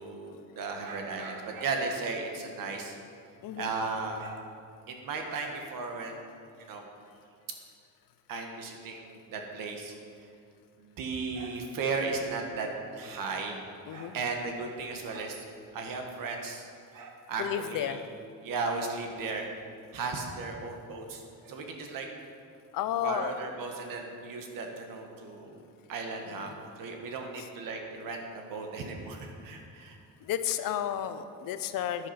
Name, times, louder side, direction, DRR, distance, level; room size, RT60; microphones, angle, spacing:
voice 1, 0.0-3.0 3.6-4.4 4.9-6.3 6.6-6.9 8.3-9.9 10.8-13.6 13.9-15.4 15.7-18.0 18.4-19.5 19.9-22.1 23.0-25.6 25.9-26.5 26.8-30.0, right 4 dB, 75° right, 3 dB, 1.6 m, -36 dB
voice 2, 17.4-18.0 22.7-23.3 26.2-26.5 30.2-32.1, left 11 dB, 75° left, 11 dB, 0.7 m, -32 dB
10.0 x 8.5 x 5.8 m, 2.3 s
cardioid pair, 125°, 34 cm